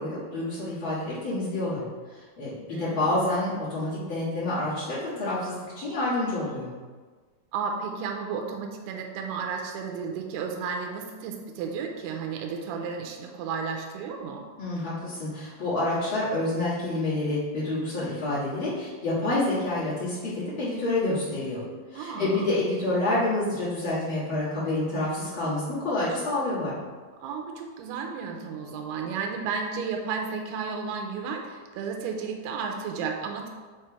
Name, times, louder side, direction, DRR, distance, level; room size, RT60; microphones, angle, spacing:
voice 1, 0.0-1.8 2.4-6.7 14.6-21.6 21.9-26.7, left 2 dB, 60° left, -12 dB, 1.3 m, -28 dB
voice 2, 2.7-3.1 7.5-14.4 21.9-22.5 27.2-33.5, right 5 dB, 85° right, 2 dB, 2.6 m, -33 dB
6.6 x 3.2 x 4.7 m, 1.4 s
omnidirectional pair, 4.7 m